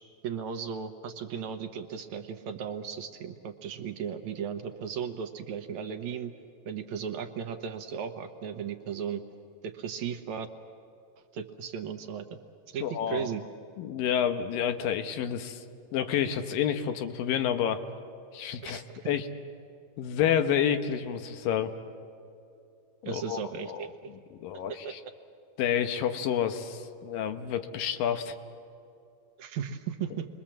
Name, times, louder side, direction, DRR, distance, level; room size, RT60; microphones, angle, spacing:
voice 1, 0.2-6.3 6.7-9.2 9.6-10.5 11.3-12.3 12.7-13.4 18.6-19.1 23.0-23.9 24.8-24.9 29.4-30.3, right 7 dB, 70° right, 7 dB, 2.1 m, -36 dB
voice 2, 12.8-13.3 13.8-15.6 15.9-17.8 18.3-19.3 20.0-21.7 23.0-23.4 23.7-23.8 24.4-25.0 25.6-28.3, left 9 dB, 85° left, 8 dB, 2.8 m, -29 dB
29.0 x 22.0 x 7.4 m, 2.6 s
omnidirectional pair, 3.9 m